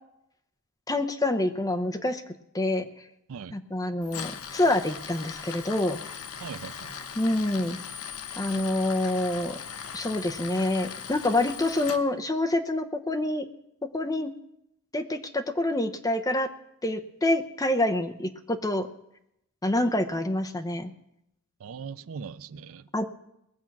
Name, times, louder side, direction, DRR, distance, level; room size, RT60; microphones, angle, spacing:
voice 1, 0.9-2.2 2.5-2.9 3.5-6.0 7.2-7.8 8.4-9.6 9.9-13.5 13.9-14.3 14.9-16.5 16.8-18.9 19.6-20.9 22.9-23.0, left 1 dB, 15° left, 0.7 m, -27 dB
Tools, 4.0-12.0, left 7 dB, 90° left, 0.9 m, -39 dB
voice 2, 6.4-6.9 21.6-22.9, right 6 dB, 70° right, 0.4 m, -40 dB
20.5 x 7.2 x 6.0 m
head